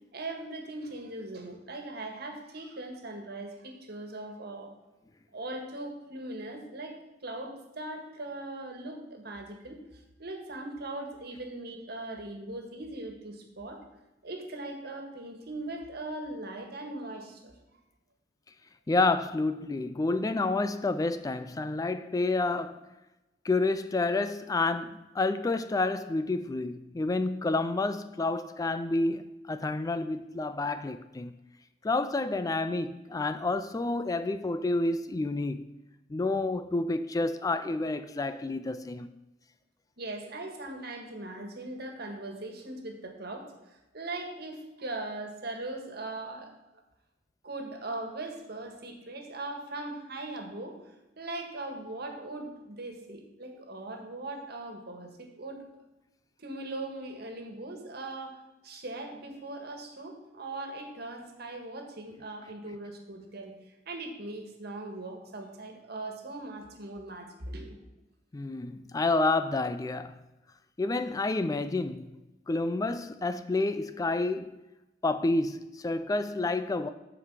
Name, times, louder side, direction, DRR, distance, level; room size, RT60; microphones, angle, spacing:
voice 1, 0.1-4.7 5.3-13.8 14.2-17.5 40.0-46.5 47.4-50.8 51.1-55.6 56.4-67.8, right 2 dB, 60° right, 1.6 m, -40 dB
voice 2, 18.9-22.8 23.4-31.3 31.8-35.7 36.1-39.1 68.3-70.2 70.8-72.1 72.5-74.6 75.0-76.9, left 2 dB, 20° left, 0.3 m, -29 dB
13.5 x 5.0 x 4.8 m
head